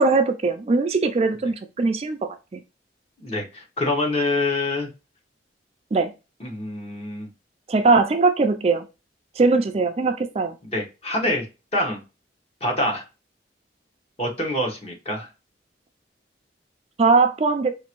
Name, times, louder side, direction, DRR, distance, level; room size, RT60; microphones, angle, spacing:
voice 1, 0.0-2.6 5.9-6.1 7.7-8.9 9.4-10.6 17.0-17.7, right 3 dB, 35° right, 0.3 m, -20 dB
voice 2, 3.2-4.9 6.4-7.3 10.6-11.4 11.7-12.0 12.6-13.0 14.2-15.3, left 1 dB, 35° left, 1.2 m, -25 dB
5.0 x 2.6 x 3.0 m
head